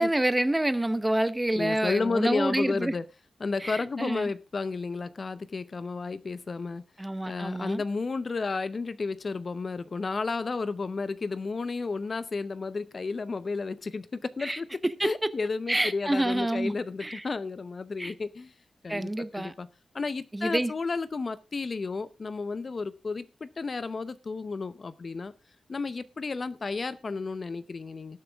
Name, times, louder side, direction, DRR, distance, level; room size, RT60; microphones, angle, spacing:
voice 1, 0.0-2.9 3.6-4.3 7.0-7.8 14.4-15.1 15.7-17.2 18.0-18.1 18.9-19.5 20.3-20.7, right 1 dB, 15° right, 0.9 m, -28 dB
voice 2, 1.5-3.0 3.4-6.8 7.3-14.7 15.0-18.5 18.8-19.7 19.9-25.3 25.7-28.2, left 4 dB, 45° left, 0.7 m, -32 dB
19.5 x 7.0 x 3.5 m
wide cardioid pair, 100°, 0 cm